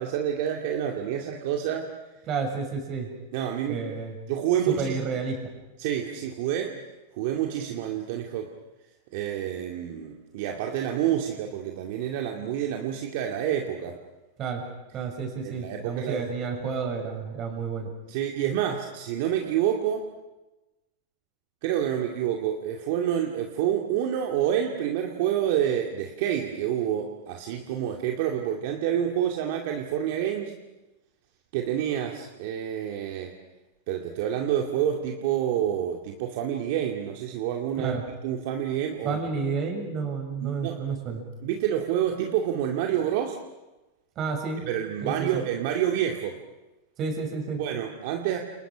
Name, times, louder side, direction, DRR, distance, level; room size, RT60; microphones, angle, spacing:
voice 1, 0.0-1.9 3.3-3.8 4.3-5.0 5.8-6.7 7.2-8.5 9.1-14.0 15.4-16.3 18.1-20.1 21.6-30.5 31.5-33.3 33.9-38.0 38.2-39.2 40.4-40.8 41.4-43.4 44.7-46.4 47.6-48.4, right 10 dB, 50° right, 2 dB, 2.4 m, -28 dB
voice 2, 2.3-3.1 3.7-4.2 4.7-5.4 14.4-14.6 14.9-17.9 37.8-38.0 39.0-41.2 44.2-44.7 45.0-45.4 47.0-47.6, right 5 dB, 25° right, 3 dB, 6.6 m, -30 dB
30.0 x 29.0 x 6.3 m, 1.1 s
supercardioid pair, 165°, 0 cm